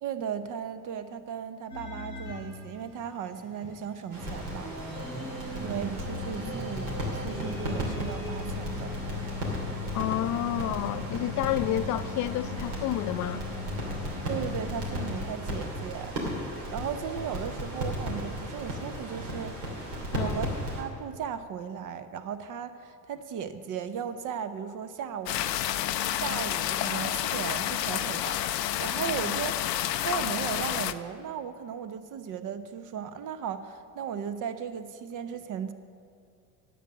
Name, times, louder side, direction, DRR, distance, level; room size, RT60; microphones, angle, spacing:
voice 1, 0.0-4.7 5.6-9.0 14.3-16.2 16.4-19.6 20.2-25.7 26.2-29.6 30.0-35.7, right 7 dB, 40° right, 11 dB, 0.8 m, -36 dB
sound 1, 1.7-15.3 15.7-15.9 16.5-16.6 17.2-17.3 17.9-18.0 19.2-19.3 19.9-20.0 20.6-20.7, left 2 dB, 90° right, 2.4 m, -38 dB
sound 2, 4.1-20.8, equal, 65° right, 3.1 m, -35 dB
voice 2, 9.9-13.4 20.1-20.4, left 12 dB, 40° left, 13 dB, 0.6 m, -30 dB
sound 3, 25.3-30.9, left 12 dB, 85° left, 0.5 m, -29 dB
10.0 x 7.9 x 7.4 m, 2.3 s
hypercardioid pair, 65°, 48 cm